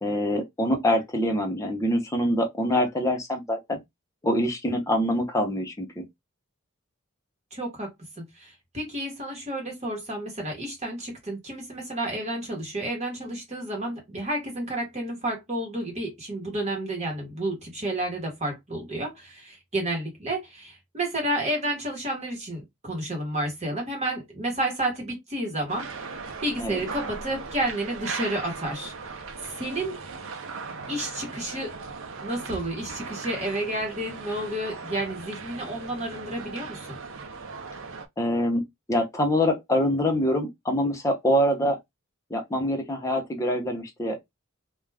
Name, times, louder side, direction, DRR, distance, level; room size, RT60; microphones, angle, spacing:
voice 1, 0.0-3.8 4.2-6.0 26.6-26.8 38.2-38.6 38.9-41.8 42.3-44.2, equal, 15° left, 0.7 m, -25 dB
voice 2, 7.5-7.9 8.2-29.2 29.6-30.0 30.9-31.8 32.2-37.0, right 1 dB, 30° right, 1.1 m, -31 dB
sound 1, 25.7-38.1, right 4 dB, 65° right, 0.5 m, -38 dB
2.4 x 2.3 x 3.3 m
head